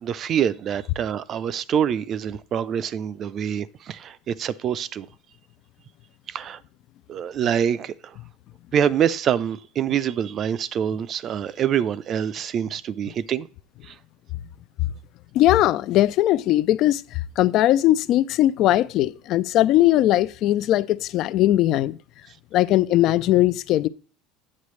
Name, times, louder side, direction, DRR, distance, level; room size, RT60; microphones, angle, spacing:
voice 1, 0.0-5.1 6.3-6.6 7.1-8.1 8.7-13.5 13.9-14.0, right 9 dB, 40° right, 0.5 m, -25 dB
voice 2, 15.3-22.0 22.5-23.9, left 14 dB, 55° left, 0.4 m, -19 dB
8.5 x 7.3 x 3.2 m
supercardioid pair, 115°, 0 cm